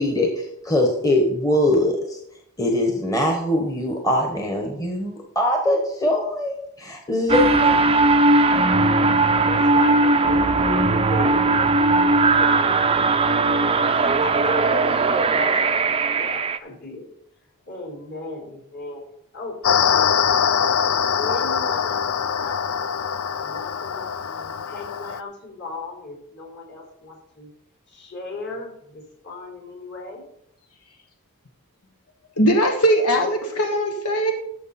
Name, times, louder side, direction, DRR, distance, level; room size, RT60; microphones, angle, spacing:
voice 1, 0.0-2.2 2.6-7.8 8.3-8.4, left 1 dB, 15° left, 2 dB, 1.3 m, -22 dB
sound 1, 7.3-16.6, right 3 dB, 25° right, 0.5 m, -18 dB
voice 2, 9.5-11.5 12.0-12.5 13.9-15.7 16.1-17.1 17.7-19.1 19.3-19.5 19.8-20.1 21.1-22.1 22.3-22.9 23.4-27.5 27.9-30.2, left 2 dB, 50° left, -1 dB, 4.6 m, -35 dB
sound 2, 19.6-25.2, left 7 dB, 70° left, 0.5 m, -23 dB
voice 3, 32.4-34.3, equal, 85° left, 3 dB, 1.4 m, -20 dB
13.0 x 7.1 x 4.3 m, 0.74 s
head